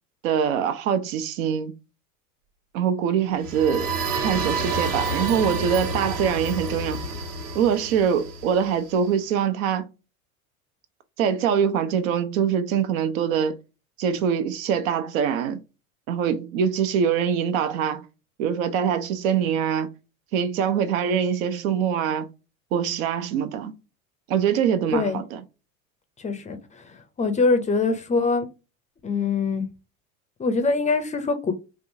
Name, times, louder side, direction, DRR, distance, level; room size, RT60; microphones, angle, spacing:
voice 1, 0.2-1.7 2.7-3.9 4.2-7.1 7.5-9.9 11.2-13.6 14.0-15.6 16.1-18.1 18.4-19.9 20.3-22.3 22.7-23.8 24.3-25.4, right 8 dB, 65° right, 0.7 m, -24 dB
sound 1, 3.3-9.1, right 3 dB, 50° right, 1.1 m, -29 dB
voice 2, 26.2-28.5 29.0-29.6 30.4-31.5, left 4 dB, 15° left, 0.5 m, -24 dB
3.5 x 2.4 x 2.7 m
hypercardioid pair, 100°, 42 cm